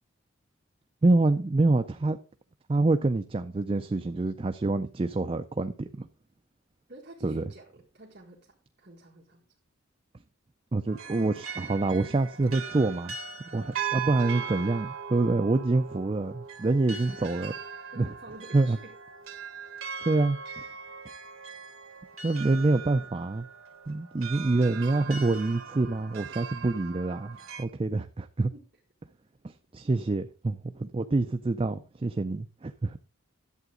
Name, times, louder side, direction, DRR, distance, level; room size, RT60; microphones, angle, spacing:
voice 1, 1.0-2.2 2.7-5.9 7.2-7.4 10.7-13.1 13.4-17.5 18.0-18.1 18.5-18.8 20.1-20.4 22.2-23.5 23.9-28.5 29.7-33.0, right 2 dB, 25° right, 0.4 m, -26 dB
voice 2, 6.9-9.5 17.9-18.9 28.5-28.6, right 1 dB, 50° right, 1.7 m, -49 dB
sound 1, 10.9-27.7, right 7 dB, 80° right, 1.1 m, -39 dB
11.0 x 7.9 x 3.8 m
head